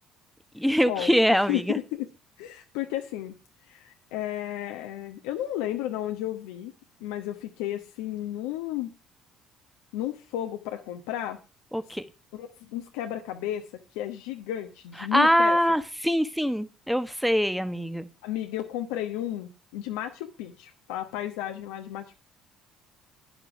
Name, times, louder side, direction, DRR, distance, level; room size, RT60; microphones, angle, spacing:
voice 1, 0.5-1.8 11.7-12.0 15.1-18.1, equal, ahead, 12 dB, 1.2 m, -23 dB
voice 2, 1.5-2.1 2.4-3.3 3.7-6.7 7.0-8.9 9.9-11.4 12.3-13.6 13.9-15.6 18.2-22.1, left 13 dB, 75° left, 4 dB, 1.0 m, -33 dB
10.5 x 7.5 x 5.9 m, 0.31 s
hypercardioid pair, 55°, 0 cm